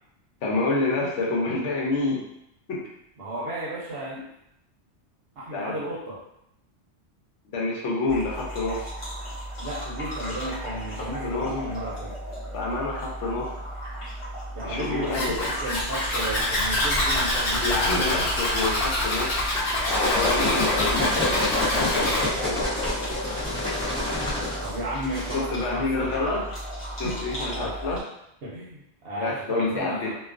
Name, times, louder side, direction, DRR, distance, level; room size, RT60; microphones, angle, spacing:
voice 1, 0.4-2.2 2.7-2.8 5.5-5.8 7.5-8.9 11.2-11.5 12.5-13.5 14.6-15.5 17.6-19.4 19.8-21.3 21.7-22.7 25.3-26.4 27.0-28.0 29.2-30.1, left 3 dB, 85° left, -2 dB, 1.0 m, -28 dB
voice 2, 3.2-4.2 5.4-6.2 9.6-12.1 14.5-18.1 24.6-26.2 27.0-27.7 28.4-30.1, right 1 dB, 60° right, -7 dB, 0.8 m, -34 dB
sound 1, 8.1-28.0, right 1 dB, 30° left, 0.8 m, -36 dB
Zipper (clothing), 15.1-22.3, left 1 dB, 60° left, 1.0 m, -26 dB
sound 2, 19.5-25.4, left 2 dB, 10° left, 0.4 m, -27 dB
2.3 x 2.3 x 2.4 m, 0.79 s
omnidirectional pair, 1.2 m